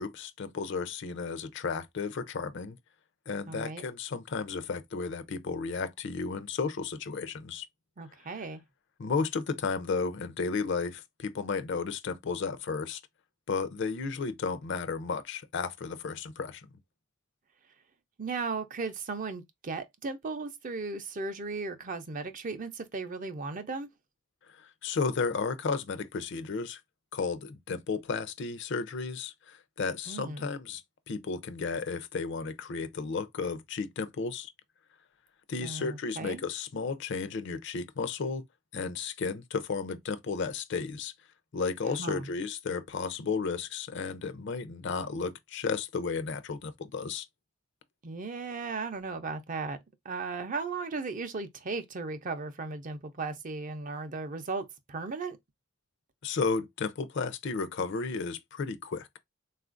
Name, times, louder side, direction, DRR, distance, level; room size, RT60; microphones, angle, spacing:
voice 1, 0.0-2.8 3.3-7.6 9.0-13.0 13.5-16.7 24.5-26.8 27.1-34.5 35.5-38.4 38.7-41.1 41.5-47.3 56.2-59.1, left 4 dB, 65° left, 0.5 m, -33 dB
voice 2, 3.5-3.8 8.0-8.6 18.2-23.9 30.1-30.5 35.6-36.4 42.0-42.3 48.0-49.8 50.0-55.4, right 4 dB, 40° right, 0.5 m, -36 dB
3.7 x 2.4 x 2.4 m
head